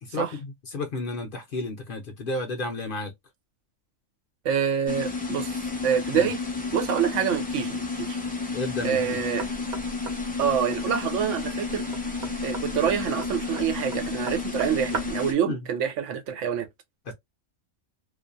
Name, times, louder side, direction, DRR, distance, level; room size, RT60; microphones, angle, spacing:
voice 1, 0.0-3.1 6.1-6.3 8.5-9.3 15.5-15.6 17.1-17.2, left 2 dB, 55° left, 0.7 m, -32 dB
voice 2, 4.4-5.5 5.8-6.4 6.7-8.2 8.8-9.5 10.4-11.8 12.4-16.7, right 8 dB, 75° right, 0.9 m, -26 dB
sound 1, 4.9-15.3, left 4 dB, 15° left, 0.3 m, -31 dB
Knock, 9.4-15.3, right 3 dB, 50° right, 0.6 m, -39 dB
2.4 x 2.2 x 2.5 m
omnidirectional pair, 1.3 m